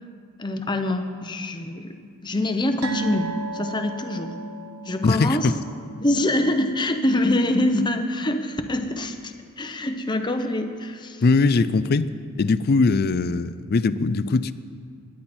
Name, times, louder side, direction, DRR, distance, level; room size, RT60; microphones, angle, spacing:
voice 1, 0.4-1.9 2.2-4.3 4.8-5.5 6.0-11.2, left 1 dB, 20° left, 6 dB, 0.8 m, -25 dB
sound 1, 2.8-9.6 9.9-10.1 10.5-10.6, right 3 dB, 80° right, 1.3 m, -37 dB
voice 2, 5.0-5.5 11.2-12.1 12.4-14.5, left 3 dB, 45° left, 15 dB, 0.4 m, -20 dB
21.0 x 10.0 x 4.4 m, 2.1 s
head